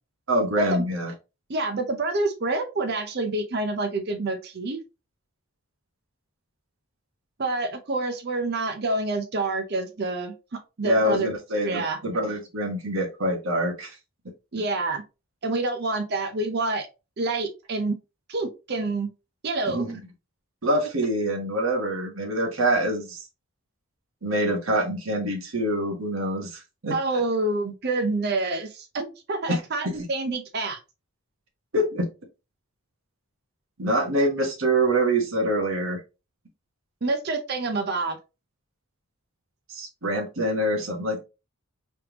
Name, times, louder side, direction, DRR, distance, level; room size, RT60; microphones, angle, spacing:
voice 1, 0.3-1.1 10.8-13.9 19.7-20.0 20.6-23.2 24.2-27.0 29.5-29.6 31.7-32.1 33.8-36.0 39.7-41.2, right 1 dB, 60° right, 2 dB, 1.1 m, -25 dB
voice 2, 1.5-4.8 7.4-10.3 10.8-11.3 11.6-12.0 14.5-15.0 15.4-16.9 17.2-18.0 18.3-19.1 19.4-19.8 26.9-30.8 37.0-38.2, right 2 dB, 45° right, 5 dB, 0.6 m, -27 dB
3.4 x 3.3 x 2.9 m, 0.28 s
head